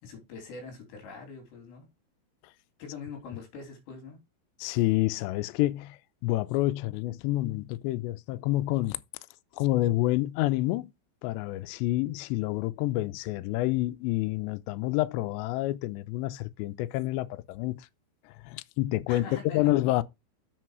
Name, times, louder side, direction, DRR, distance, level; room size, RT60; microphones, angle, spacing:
voice 1, 0.0-1.9 2.8-4.2 19.1-19.7, left 4 dB, 60° left, 4.9 m, -43 dB
voice 2, 4.6-9.0 9.6-10.9 11.2-17.9 18.3-20.0, left 17 dB, 85° left, 2.5 m, -28 dB
7.7 x 6.3 x 4.8 m
omnidirectional pair, 5.8 m